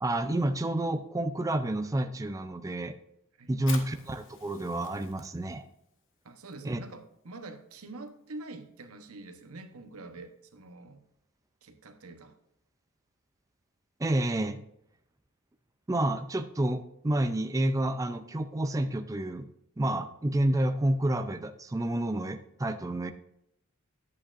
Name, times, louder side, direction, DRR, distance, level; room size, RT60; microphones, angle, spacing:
voice 1, 0.0-2.9 3.5-5.6 6.6-6.8 14.0-14.6 15.9-19.5 19.8-23.1, right 1 dB, 15° right, 9 dB, 0.4 m, -29 dB
Fire, 3.5-10.7, left 6 dB, 60° left, 1.2 m, -50 dB
voice 2, 6.2-11.0 11.6-12.4, right 2 dB, 70° right, 7 dB, 1.0 m, -45 dB
11.0 x 8.4 x 2.5 m, 0.78 s
head